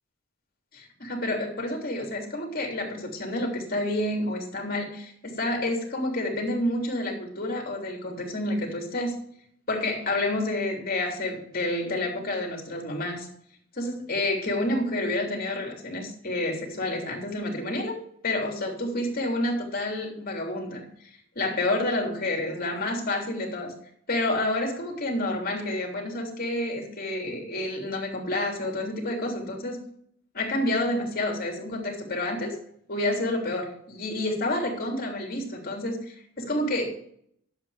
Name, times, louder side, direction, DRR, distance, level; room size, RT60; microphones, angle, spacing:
voice 1, 0.7-9.2 9.7-13.3 13.7-18.0 18.2-21.1 21.3-23.7 24.1-29.8 30.3-32.6 32.9-36.9, left 1 dB, 45° left, 2 dB, 3.2 m, -29 dB
11.5 x 8.0 x 5.0 m, 0.66 s
head